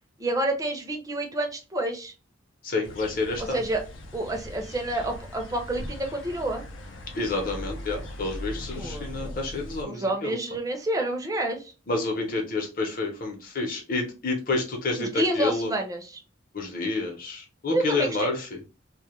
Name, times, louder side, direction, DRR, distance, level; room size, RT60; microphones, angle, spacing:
voice 1, 0.2-2.1 3.4-3.8 4.1-6.6 8.8-9.4 9.8-11.7 15.0-16.2 17.7-18.3, right 1 dB, 20° right, 3 dB, 0.5 m, -29 dB
voice 2, 2.6-3.6 7.1-10.4 11.9-15.7 16.5-18.4, left 3 dB, 45° left, 2 dB, 0.7 m, -29 dB
sound 1, 2.8-9.8, left 1 dB, 80° left, 0.6 m, -39 dB
2.2 x 2.1 x 2.9 m, 0.31 s
head